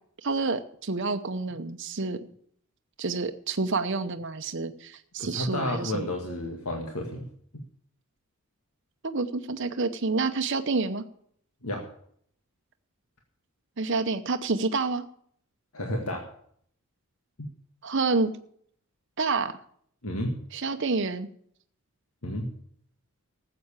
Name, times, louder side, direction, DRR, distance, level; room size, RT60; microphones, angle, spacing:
voice 1, 0.2-2.2 3.0-6.1 9.0-11.0 13.8-15.0 17.8-18.3 19.2-19.6 20.5-21.3, right 3 dB, 55° right, 7 dB, 0.8 m, -28 dB
voice 2, 5.2-7.3 11.6-11.8 15.7-16.3 20.0-20.4 22.2-22.5, left 1 dB, 80° left, 2 dB, 1.8 m, -31 dB
13.5 x 7.8 x 7.2 m, 0.63 s
head